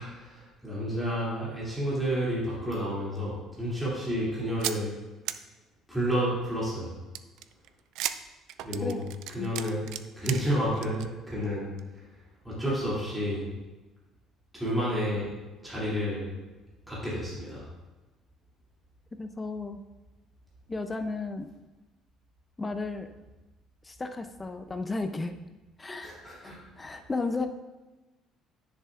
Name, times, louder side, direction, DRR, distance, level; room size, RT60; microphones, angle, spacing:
voice 1, 0.0-4.9 5.9-6.9 8.6-9.0 9.3-11.7 12.4-13.5 14.5-15.3 15.6-16.3 16.9-17.7 26.0-26.6 26.8-27.0, equal, 5° right, -8 dB, 2.4 m, -30 dB
sound 1, 4.6-4.8 5.2-5.3 7.1-10.4 10.7-11.1 11.4-11.5 11.8-11.9, right 12 dB, 65° right, 0.3 m, -35 dB
voice 2, 19.2-19.8 20.7-21.5 22.6-23.1 23.8-25.3 25.8-27.5, left 3 dB, 15° left, 8 dB, 0.4 m, -34 dB
10.5 x 6.7 x 2.3 m, 1.1 s
cardioid pair, 165°, 0 cm